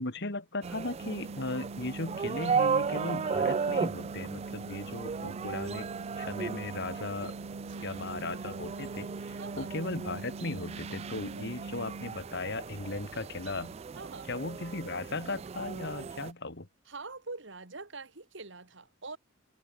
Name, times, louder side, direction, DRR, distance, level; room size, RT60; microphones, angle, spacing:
voice 1, 0.0-5.9 6.2-7.3 7.8-13.7 14.3-16.7, left 2 dB, 60° left, 2.7 m, -37 dB
sound 1, 0.6-16.3, right 5 dB, 30° right, 0.3 m, -36 dB
sound 2, 1.0-12.1, right 3 dB, 85° right, 0.9 m, -43 dB
voice 2, 7.7-8.1 9.4-9.7 11.1-11.9 14.0-14.3 16.9-19.2, right 3 dB, 65° right, 2.5 m, -45 dB
head